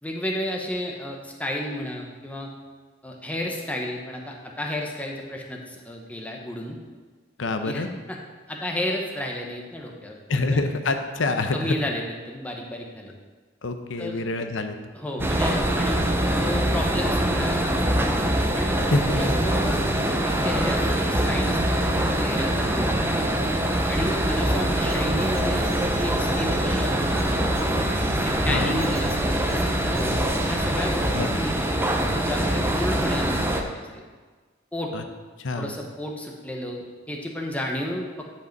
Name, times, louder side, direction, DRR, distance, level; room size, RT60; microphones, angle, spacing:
voice 1, 0.0-2.5 3.0-6.8 7.6-7.8 8.5-10.6 11.5-13.1 14.0-14.2 14.9-18.1 18.5-18.8 19.2-23.3 23.9-27.8 28.2-31.5 31.8-34.0 34.7-34.9 35.6-38.3, left 1 dB, 10° left, 0 dB, 0.9 m, -32 dB
voice 2, 7.4-7.9 10.3-11.8 13.6-14.8 15.2-15.3 18.8-19.4 28.4-28.8 31.1-31.3 34.9-35.0 35.4-35.7, left 2 dB, 75° left, 7 dB, 0.7 m, -26 dB
sound 1, 15.2-33.6, right 1 dB, 10° right, 0.6 m, -24 dB
sound 2, 23.9-31.1, equal, 50° right, 2.1 m, -35 dB
9.8 x 5.1 x 4.6 m, 1.4 s
head